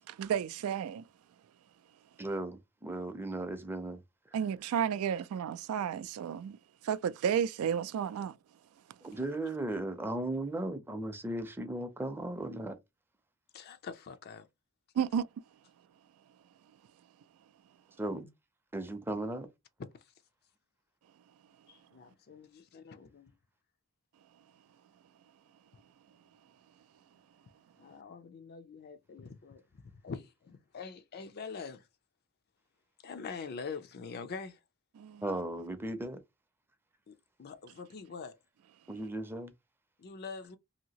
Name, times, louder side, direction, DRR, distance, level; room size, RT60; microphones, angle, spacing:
voice 1, 0.1-1.1 4.3-6.6 6.8-8.4 15.0-15.3 35.0-35.2, right 8 dB, 80° right, 0.3 m, -32 dB
voice 2, 2.2-4.0 9.0-12.7 18.0-18.3 18.7-19.5 35.2-36.2 38.9-39.5, right 1 dB, 10° right, 0.5 m, -36 dB
voice 3, 13.5-14.5 21.7-23.3 27.8-31.9 33.0-34.6 37.1-37.2 37.4-38.4 40.0-40.6, left 5 dB, 50° left, 0.4 m, -44 dB
2.8 x 2.7 x 2.8 m
head